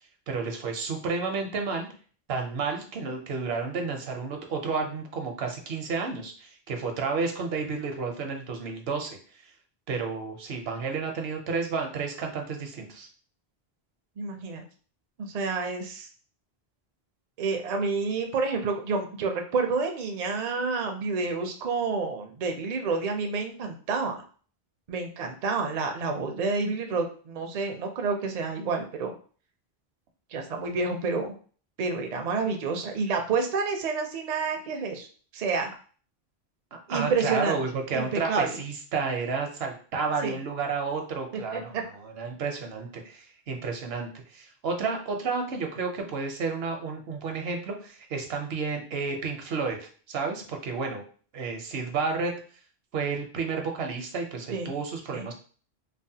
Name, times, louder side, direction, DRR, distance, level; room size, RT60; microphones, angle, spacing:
voice 1, 0.3-1.9 2.3-9.2 9.9-13.1 36.7-51.0 51.3-52.3 52.9-55.3, right 4 dB, 75° right, 3 dB, 0.9 m, -31 dB
voice 2, 14.2-14.6 15.2-16.1 17.4-24.2 24.9-29.1 30.3-31.3 31.8-35.1 35.3-35.7 36.9-37.6 37.9-38.6 40.2-40.4 41.3-41.8 54.5-54.7 55.1-55.3, right 4 dB, 50° right, 3 dB, 0.5 m, -29 dB
3.2 x 2.1 x 2.7 m, 0.41 s
omnidirectional pair, 1.1 m